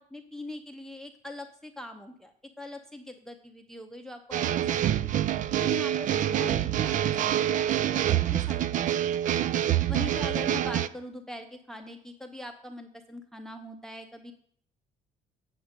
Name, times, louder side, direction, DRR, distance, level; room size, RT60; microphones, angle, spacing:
voice 1, 0.0-5.1 5.6-7.7 7.9-8.8 9.9-14.3, left 1 dB, 5° left, 7 dB, 0.6 m, -42 dB
sound 1, 4.3-10.9, right 11 dB, 50° right, 0.4 m, -26 dB
7.9 x 7.7 x 5.1 m, 0.63 s
cardioid pair, 110°, 17 cm